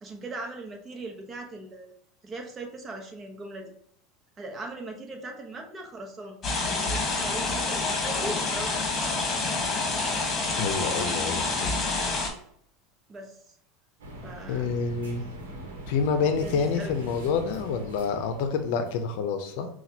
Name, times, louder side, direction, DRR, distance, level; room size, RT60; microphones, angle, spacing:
voice 1, 0.0-1.9 2.2-3.7 4.4-8.9 13.1-13.4 14.2-14.7 16.4-16.9, right 2 dB, 30° right, 2 dB, 1.0 m, -39 dB
sound 1, 6.4-12.3, left 3 dB, 30° left, 1.4 m, -28 dB
voice 2, 10.6-11.8 14.5-15.2 15.9-19.7, left 5 dB, 70° left, 7 dB, 0.6 m, -28 dB
sound 2, 14.0-19.0, right 1 dB, 85° right, 1.1 m, -41 dB
5.8 x 2.4 x 2.8 m, 0.67 s
hypercardioid pair, 100°, 0 cm